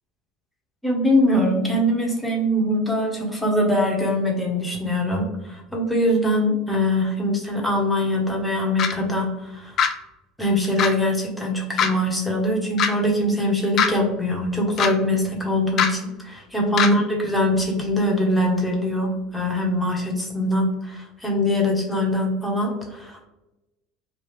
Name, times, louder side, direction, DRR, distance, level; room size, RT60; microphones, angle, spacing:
voice 1, 0.8-9.7 10.4-23.3, left 1 dB, 5° left, -1 dB, 1.1 m, -22 dB
sound 1, 8.8-8.9 9.8-9.9 10.8-10.9 11.8-11.9 12.8-12.9 13.8-13.9 14.8-14.9 15.8-15.9 16.8-16.9, left 7 dB, 50° left, 0.4 m, -20 dB
3.2 x 2.3 x 3.2 m, 0.96 s
supercardioid pair, 90°, 0 cm